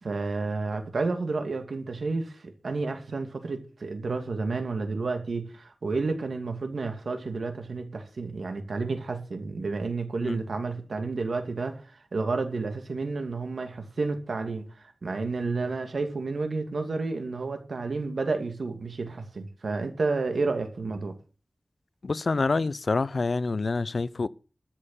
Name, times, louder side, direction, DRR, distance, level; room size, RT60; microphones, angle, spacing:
voice 1, 0.0-11.9 12.1-21.1, right 3 dB, 85° right, 2.5 m, -31 dB
voice 2, 22.0-24.3, left 3 dB, 65° left, 0.6 m, -27 dB
13.0 x 6.7 x 8.4 m
wide cardioid pair, 85°, 0 cm